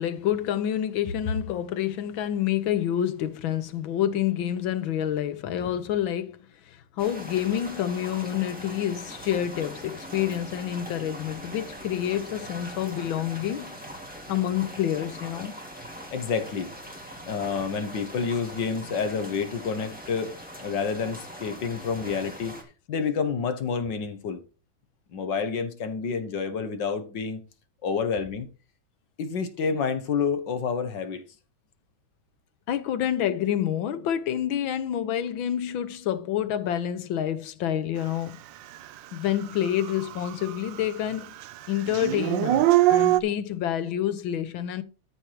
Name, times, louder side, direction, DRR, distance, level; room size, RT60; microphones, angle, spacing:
voice 1, 0.0-13.8 14.3-15.5 32.7-38.4 39.1-41.3 41.7-44.8, left 10 dB, 85° left, 1.7 m, -28 dB
sound 1, 7.0-22.6, equal, 5° right, 2.6 m, -41 dB
voice 2, 16.1-16.7 17.3-22.6 22.9-24.4 25.1-27.4 27.8-28.5 29.2-31.2, left 5 dB, 65° left, 1.8 m, -29 dB
Dog / Siren, 38.9-39.0 39.4-40.9 41.1-43.2, right 15 dB, 75° right, 1.3 m, -22 dB
13.0 x 4.5 x 4.8 m
omnidirectional pair, 2.1 m